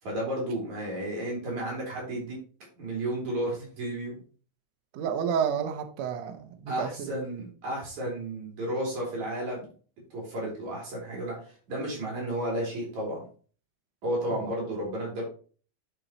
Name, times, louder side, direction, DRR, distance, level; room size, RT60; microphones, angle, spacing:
voice 1, 0.0-2.4 2.8-4.2 6.7-9.7 10.1-13.2 14.0-15.2, right 1 dB, 50° right, 4.5 m, -32 dB
voice 2, 4.9-7.2 14.3-14.5, right 7 dB, 85° right, 1.5 m, -31 dB
11.0 x 5.5 x 3.0 m
omnidirectional pair, 4.3 m